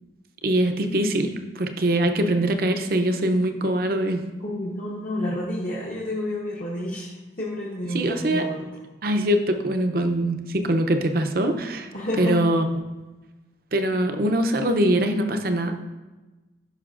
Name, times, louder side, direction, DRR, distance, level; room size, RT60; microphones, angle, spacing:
voice 1, 0.4-4.3 7.9-8.5 9.0-11.9 12.2-12.7 13.7-15.7, right 1 dB, 50° right, 6 dB, 0.6 m, -23 dB
voice 2, 4.4-7.1 7.4-8.6 11.9-12.4, left 1 dB, 45° left, -5 dB, 1.0 m, -29 dB
11.0 x 5.9 x 2.5 m, 1.2 s
head